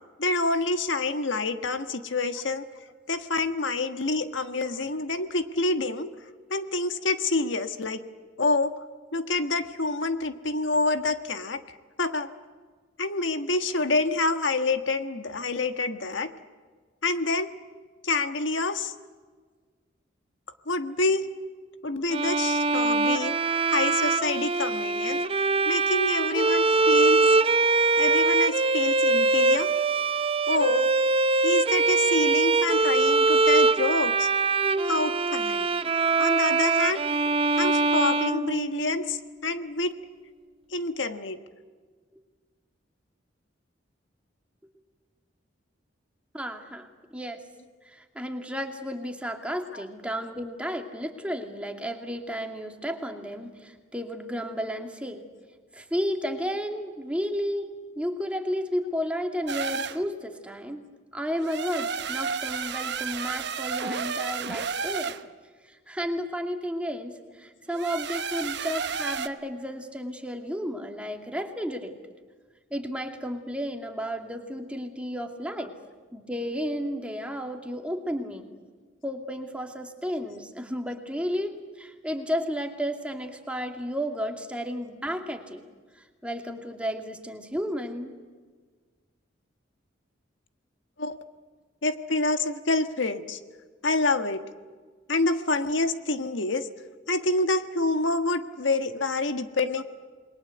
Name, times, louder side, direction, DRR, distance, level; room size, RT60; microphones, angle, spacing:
voice 1, 0.2-2.6 3.1-6.1 6.5-8.0 8.4-8.7 9.1-11.6 12.0-12.3 13.0-16.3 17.0-17.5 18.0-18.9 20.7-21.3 21.8-23.4 23.7-25.2 25.6-27.2 28.0-29.7 30.5-30.9 31.4-34.3 34.8-35.7 36.2-37.0 37.6-39.9 40.7-41.4 49.7-49.8 91.0-91.2 91.8-93.4 93.8-94.4 95.1-96.7 97.1-99.8, left 3 dB, 80° left, 9 dB, 1.5 m, -27 dB
Bowed string instrument, 22.1-39.1, right 3 dB, 30° right, 0.8 m, -23 dB
voice 2, 46.3-47.4 47.9-55.2 55.7-60.8 61.1-65.2 65.6-71.9 72.7-75.7 76.1-78.5 79.0-85.7 86.2-88.2, equal, 5° right, 4 dB, 2.5 m, -32 dB
sound 1, 59.5-60.0 61.4-65.2 67.7-69.3, right 6 dB, 65° right, 1.1 m, -31 dB
28.0 x 22.0 x 8.0 m, 1.5 s
head